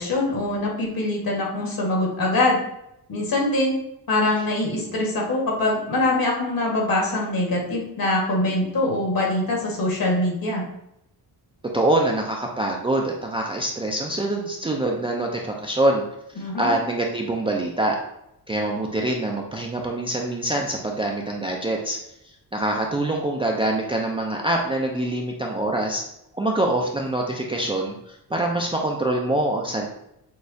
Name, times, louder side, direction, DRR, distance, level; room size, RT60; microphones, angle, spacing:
voice 1, 0.0-2.6 3.1-3.7 4.1-10.6 16.4-16.7, left 2 dB, 60° left, -2 dB, 1.5 m, -23 dB
voice 2, 11.7-16.0 16.4-18.0 18.5-22.0 22.5-26.0 26.3-29.9, right 1 dB, 15° right, 0 dB, 0.3 m, -24 dB
6.2 x 2.3 x 2.6 m, 0.81 s
cardioid pair, 120°, 40 cm